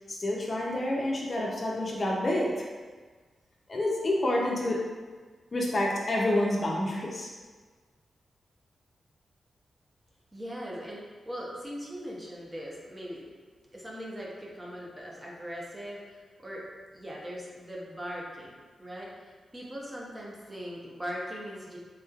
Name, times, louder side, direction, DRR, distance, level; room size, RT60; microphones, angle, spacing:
voice 1, 0.1-2.7 3.7-4.8 5.5-7.3, left 1 dB, 40° left, -3 dB, 0.5 m, -28 dB
voice 2, 10.3-13.3 13.7-16.7 16.9-21.8, equal, 20° right, -4 dB, 0.7 m, -40 dB
3.5 x 3.0 x 2.3 m, 1.4 s
cardioid pair, 85°, 0 cm